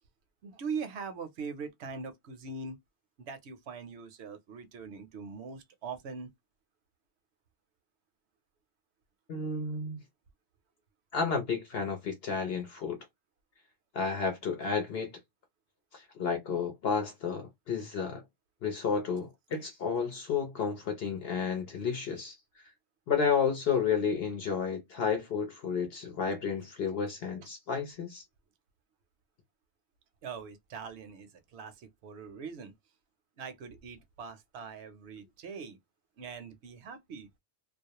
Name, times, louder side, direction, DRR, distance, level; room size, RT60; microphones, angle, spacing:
voice 1, 0.4-2.8 3.2-6.3 30.2-32.7 33.4-35.8 36.2-37.3, right 5 dB, 65° right, 0.8 m, -42 dB
voice 2, 9.3-10.0 11.1-13.0 13.9-15.2 15.9-18.2 18.6-22.6 23.1-28.2, left 6 dB, 60° left, 0.8 m, -31 dB
2.3 x 2.0 x 2.8 m
omnidirectional pair, 1.3 m